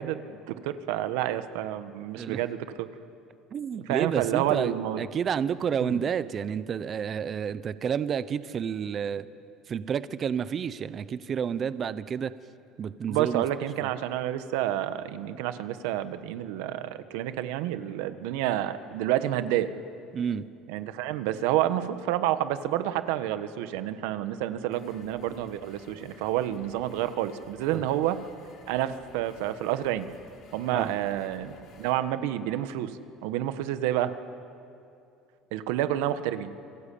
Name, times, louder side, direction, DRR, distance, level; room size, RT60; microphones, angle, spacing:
voice 1, 0.0-2.9 3.9-5.0 5.8-6.0 13.1-19.7 20.7-28.2 28.7-30.1 30.5-32.9 33.2-34.1 35.5-36.5, right 12 dB, 85° right, 11 dB, 1.4 m, -29 dB
voice 2, 3.5-9.2 9.7-12.3 12.8-13.4 20.1-20.4 27.7-27.8 30.7-30.9, right 7 dB, 35° right, 14 dB, 0.8 m, -30 dB
sound 1, 24.7-31.9, left 5 dB, 60° left, 4.7 m, -54 dB
28.5 x 23.0 x 8.6 m, 2.5 s
cardioid pair, 130°, 0 cm